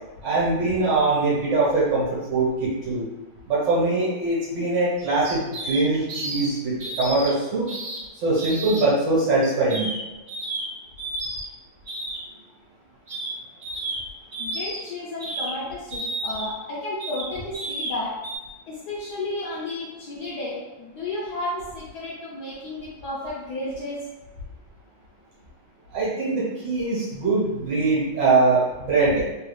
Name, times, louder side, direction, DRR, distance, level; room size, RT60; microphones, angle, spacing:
voice 1, 0.2-2.0 2.3-3.1 3.5-7.7 8.2-9.9 25.9-29.3, right 3 dB, 70° right, -7 dB, 1.7 m, -22 dB
sound 1, 5.0-5.8 6.1-6.5 6.8-7.3 7.7-8.0 8.4-8.9 9.4-10.0 10.3-10.7 11.0-11.5 11.9-12.2 13.1-13.3 13.6-14.0 14.3-14.8 15.2-15.5 15.9-16.5 17.0-17.2 17.5-17.9 18.2-18.4, right 2 dB, 55° right, 1.1 m, -31 dB
voice 2, 14.4-18.1 18.7-24.0, left 2 dB, 65° left, -7 dB, 1.1 m, -32 dB
3.6 x 2.3 x 3.1 m, 1.1 s
omnidirectional pair, 2.1 m